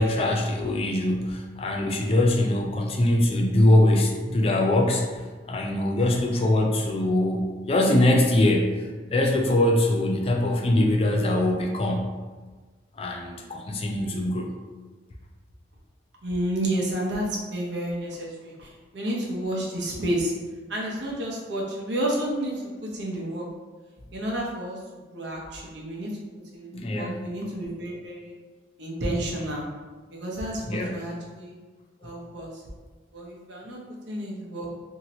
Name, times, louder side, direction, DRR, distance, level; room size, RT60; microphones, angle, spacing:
voice 1, 0.0-5.0 5.5-8.8 9.1-12.1 13.0-14.5 26.7-27.2 30.7-31.0 32.0-32.1, left 1 dB, 30° left, 1 dB, 0.3 m, -22 dB
voice 2, 13.8-14.2 16.2-20.3 20.7-23.4 24.1-24.8 25.1-26.1 26.5-28.3 28.8-29.7 30.1-31.6 32.0-32.6 33.1-33.8 34.1-34.7, right 1 dB, 70° right, -3 dB, 0.8 m, -31 dB
2.9 x 2.8 x 2.8 m, 1.4 s
head